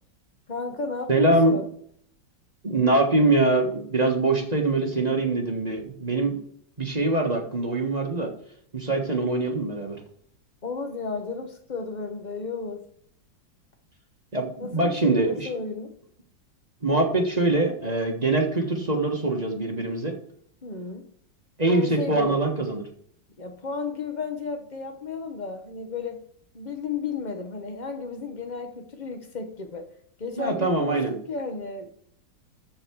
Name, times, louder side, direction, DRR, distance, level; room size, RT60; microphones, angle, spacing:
voice 1, 0.5-1.7 10.6-12.9 14.6-15.9 20.6-21.1 21.6-22.4 23.4-26.2 26.5-29.9 30.2-31.9, left 4 dB, 35° left, 0.7 m, -33 dB
voice 2, 1.1-1.6 2.6-6.4 6.8-8.3 8.7-10.0 14.3-15.5 16.8-20.1 21.6-22.8 30.4-31.1, right 2 dB, 25° right, 1.2 m, -23 dB
14.0 x 4.8 x 4.6 m
omnidirectional pair, 2.2 m